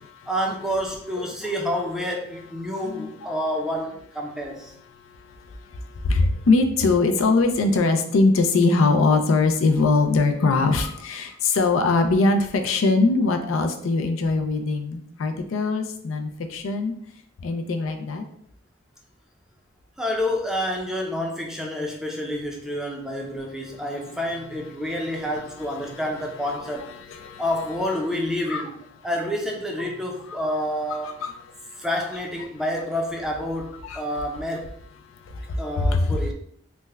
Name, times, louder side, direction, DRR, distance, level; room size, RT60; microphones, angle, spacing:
voice 1, 0.3-4.7 20.0-26.9 27.4-28.7 29.0-31.2 31.8-34.7 35.6-36.3, equal, 5° right, 0 dB, 0.5 m, -28 dB
voice 2, 6.0-16.9 17.4-18.2 27.1-27.4 28.5-28.7 30.3-30.4 31.2-31.3 33.8-34.0 35.3-36.2, left 3 dB, 85° left, 6 dB, 0.4 m, -21 dB
3.3 x 2.1 x 3.3 m, 0.68 s
head